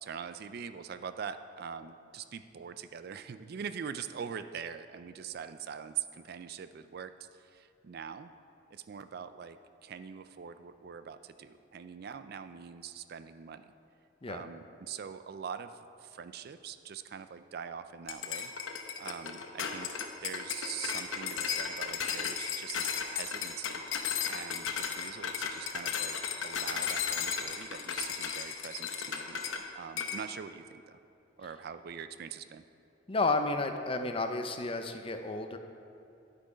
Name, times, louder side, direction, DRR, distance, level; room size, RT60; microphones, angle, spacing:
voice 1, 0.0-8.3 8.7-13.7 14.3-18.5 19.0-23.8 24.3-26.2 26.4-31.0 31.4-32.6, right 7 dB, 50° right, 12 dB, 0.4 m, -43 dB
sound 1, 18.1-29.6 30.0-30.2, left 7 dB, 80° left, 0.9 m, -35 dB
voice 2, 33.1-35.6, left 3 dB, 30° left, 7 dB, 0.6 m, -31 dB
10.5 x 8.4 x 5.1 m, 2.7 s
head